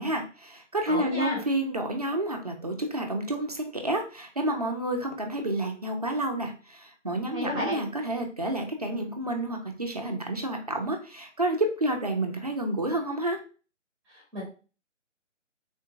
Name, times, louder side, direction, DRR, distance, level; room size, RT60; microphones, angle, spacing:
voice 1, 0.0-13.4, right 1 dB, 35° right, 3 dB, 0.4 m, -30 dB
voice 2, 0.9-1.4 7.3-7.8 14.1-14.4, left 2 dB, 5° right, -4 dB, 0.8 m, -32 dB
3.6 x 2.6 x 2.6 m, 0.36 s
figure-of-eight pair, 150°, 38 cm